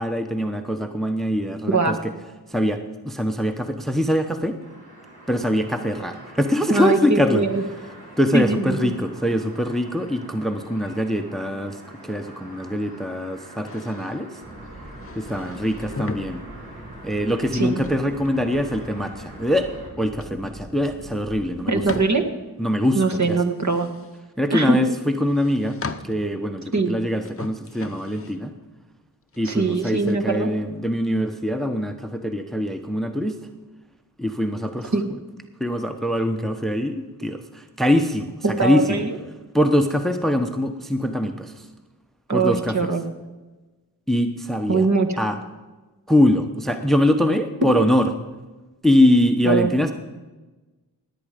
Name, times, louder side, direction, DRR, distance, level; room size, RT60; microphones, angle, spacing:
voice 1, 0.0-2.1 2.5-4.6 5.3-7.4 8.2-14.4 15.1-16.4 17.0-19.7 20.0-21.8 22.6-23.4 24.4-25.8 26.0-28.5 29.4-33.4 34.2-34.9 35.6-39.0 39.5-41.7 42.3-42.8 44.1-44.9 45.2-45.4 46.1-48.1 48.8-49.9, left 1 dB, ahead, 7 dB, 1.0 m, -23 dB
sound 1, 4.6-19.9, right 1 dB, 60° right, 3.7 m, -45 dB
voice 2, 6.7-7.6 8.3-8.9 17.5-17.8 21.7-22.2 22.9-23.9 24.5-24.8 26.7-26.9 29.5-30.5 34.9-35.0 38.4-39.2 42.3-43.1 44.7-45.2 47.7-47.8 49.5-49.7, right 3 dB, 45° right, 3 dB, 1.7 m, -21 dB
sound 2, 13.7-14.2 15.0-16.3 17.4-18.7 20.1-20.5 20.8-20.9 21.9-22.2 23.2-24.2 25.2-26.3 27.2-28.4 29.3-30.1, left 4 dB, 35° left, 0.9 m, -37 dB
sound 3, 14.4-22.1, right 1 dB, 20° right, 1.4 m, -42 dB
18.5 x 8.6 x 5.1 m, 1.2 s
cardioid pair, 40°, 41 cm